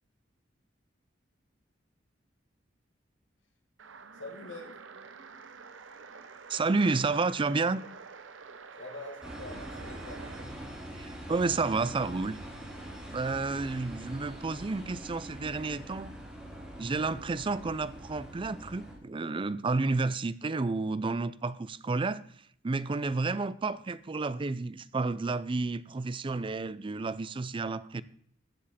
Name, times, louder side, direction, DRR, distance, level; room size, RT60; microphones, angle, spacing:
sound 1, 3.8-10.5, right 5 dB, 90° right, 0.9 m, -48 dB
voice 1, 4.1-4.8 8.8-10.3 16.7-17.1, left 2 dB, 80° left, 1.8 m, -45 dB
voice 2, 6.5-7.8 11.0-12.4 13.1-16.1 16.8-22.2 22.6-28.0, right 3 dB, 25° right, 0.4 m, -31 dB
sound 2, 9.2-19.0, right 1 dB, 5° right, 4.7 m, -43 dB
14.5 x 7.4 x 4.2 m
head